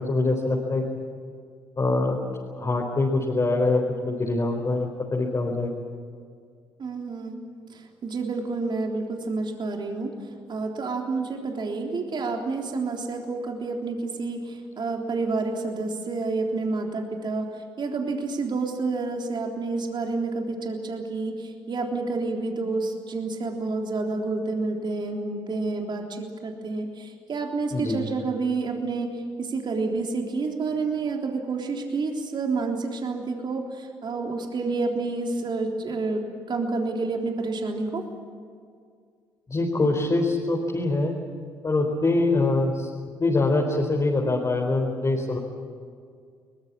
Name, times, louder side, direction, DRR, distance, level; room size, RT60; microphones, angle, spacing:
voice 1, 0.1-1.0 1.8-2.2 2.6-5.7 27.7-28.0 39.5-41.2 41.6-42.9 43.2-45.4, left 2 dB, 30° left, -1 dB, 4.5 m, -24 dB
voice 2, 6.8-7.4 7.7-10.1 10.5-38.0, right 3 dB, 45° right, 2 dB, 3.6 m, -29 dB
23.0 x 21.0 x 8.7 m, 2.2 s
hypercardioid pair, 50°, 10 cm